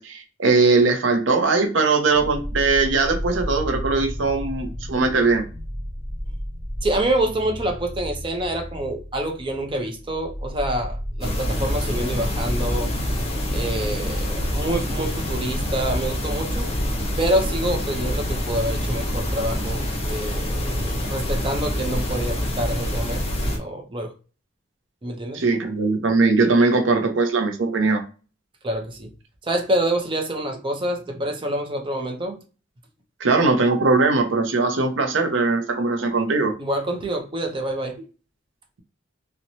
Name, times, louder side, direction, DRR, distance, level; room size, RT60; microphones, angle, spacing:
voice 1, 0.0-5.4 25.3-28.0 33.2-36.5, right 3 dB, 75° right, 0.6 m, -20 dB
sound 1, 2.1-13.2, equal, 50° right, 1.1 m, -33 dB
voice 2, 6.8-12.9 13.5-16.7 17.2-24.1 25.0-25.4 28.6-29.1 29.4-32.4 36.6-38.0, right 1 dB, 25° right, 0.5 m, -27 dB
sound 2, 11.2-23.6, equal, 35° left, 0.6 m, -26 dB
2.9 x 2.1 x 2.6 m
head